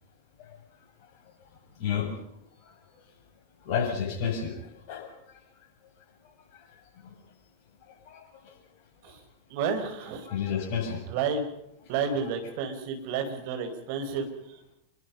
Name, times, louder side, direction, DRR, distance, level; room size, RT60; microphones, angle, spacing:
voice 1, 1.8-2.1 3.7-4.5 4.9-5.1 7.0-7.1 8.1-8.2 10.3-11.0, left 7 dB, 45° left, 4 dB, 7.1 m, -29 dB
voice 2, 9.5-10.3 11.1-11.5 11.9-14.7, right 5 dB, 45° right, 7 dB, 4.8 m, -31 dB
26.5 x 23.0 x 5.4 m, 0.77 s
figure-of-eight pair, 90°, 0 cm